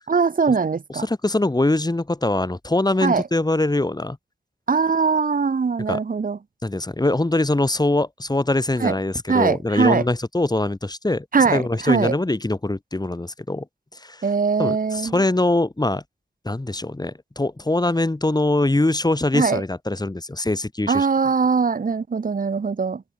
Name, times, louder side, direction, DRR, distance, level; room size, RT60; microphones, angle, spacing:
voice 1, 0.1-1.1 3.0-3.2 4.7-6.4 8.8-9.0 9.3-10.0 11.3-12.2 14.2-15.2 19.3-19.6 20.9-23.0, right 5 dB, 85° right, 3.4 m, -21 dB
voice 2, 1.0-4.2 5.9-6.0 6.6-13.7 13.9-14.3 14.6-16.0 16.4-21.1, left 2 dB, 30° left, 7.5 m, -23 dB
wide cardioid pair, 65°, 14 cm